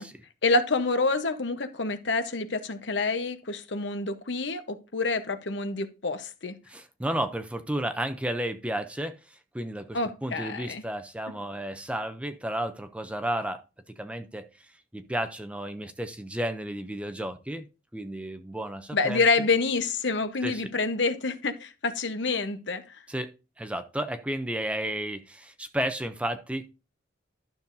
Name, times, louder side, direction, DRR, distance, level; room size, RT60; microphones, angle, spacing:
voice 1, 0.4-6.5 9.9-10.8 18.9-22.8, left 3 dB, 65° left, 0.9 m, -27 dB
voice 2, 6.7-17.7 17.9-19.2 20.4-20.7 23.1-23.3 23.6-26.7, right 1 dB, 5° right, 0.5 m, -33 dB
12.0 x 6.9 x 2.6 m
head